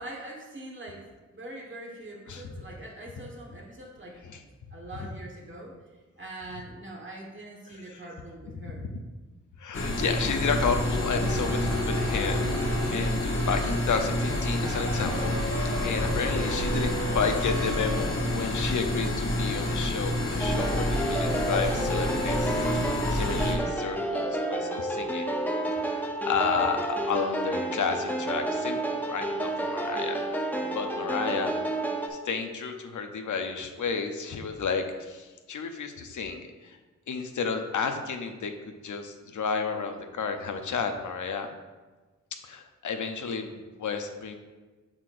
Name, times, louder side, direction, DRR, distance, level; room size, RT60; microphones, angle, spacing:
voice 1, 0.0-4.2 4.7-5.8 6.2-8.9 26.5-26.6, right 1 dB, 40° right, -2 dB, 1.4 m, -43 dB
voice 2, 7.7-8.0 8.7-9.0 9.6-12.6 12.9-25.3 25.8-30.2 30.7-31.6 32.1-36.8 37.1-41.5 42.4-44.4, left 5 dB, 90° left, 5 dB, 0.7 m, -32 dB
sound 1, 9.7-23.5, left 1 dB, 45° left, 1.1 m, -28 dB
sound 2, 11.2-13.3 14.6-18.0, equal, 85° right, 1.2 m, -36 dB
sound 3, 20.4-32.1, right 1 dB, 5° left, 0.6 m, -30 dB
7.5 x 6.5 x 2.5 m, 1.3 s
wide cardioid pair, 130°, 29 cm